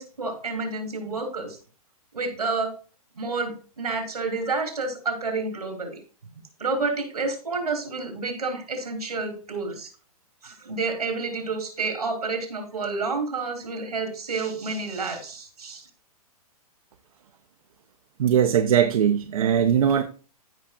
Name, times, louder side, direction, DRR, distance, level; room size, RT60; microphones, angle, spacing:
voice 1, 0.0-1.6 2.1-2.7 3.2-6.0 6.6-9.9 10.4-15.9, right 3 dB, 90° right, 4 dB, 3.7 m, -29 dB
voice 2, 18.2-20.0, right 8 dB, 65° right, 6 dB, 0.9 m, -20 dB
15.0 x 5.8 x 2.3 m, 0.37 s
hypercardioid pair, 120°, 19 cm